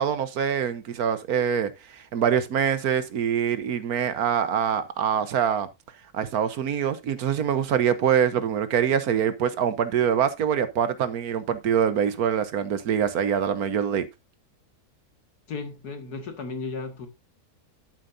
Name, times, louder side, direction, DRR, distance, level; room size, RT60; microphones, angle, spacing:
voice 1, 0.0-1.7 2.1-5.7 6.1-14.1, right 8 dB, 75° right, 1.4 m, -24 dB
voice 2, 15.5-17.1, left 4 dB, 85° left, 2.4 m, -34 dB
11.0 x 8.9 x 2.7 m
omnidirectional pair, 1.6 m